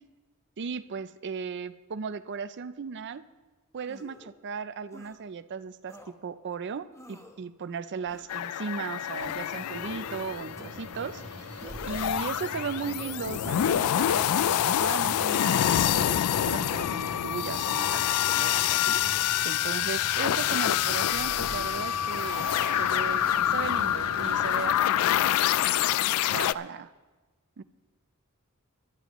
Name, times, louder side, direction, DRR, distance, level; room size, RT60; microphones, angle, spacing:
voice 1, 0.6-3.2 3.7-11.4 11.8-19.0 19.4-22.5 22.8-24.8 25.1-25.2 26.3-26.9 27.6-27.7, right 5 dB, 55° right, 13 dB, 0.5 m, -36 dB
sound 1, 3.8-4.3 4.9-5.2 5.9-6.1 6.9-7.4 8.1-8.4 9.2-9.6 10.6-10.7 11.6-12.0 12.9-13.4 14.2-14.6 15.5-15.8 16.7-17.0 17.8-18.1 19.0-19.4, left 1 dB, 15° left, 1.0 m, -50 dB
sound 2, 8.3-26.5, left 11 dB, 80° left, 0.3 m, -27 dB
sound 3, 9.5-24.8, right 2 dB, 75° right, 1.5 m, -44 dB
21.0 x 11.5 x 3.1 m, 1.2 s
head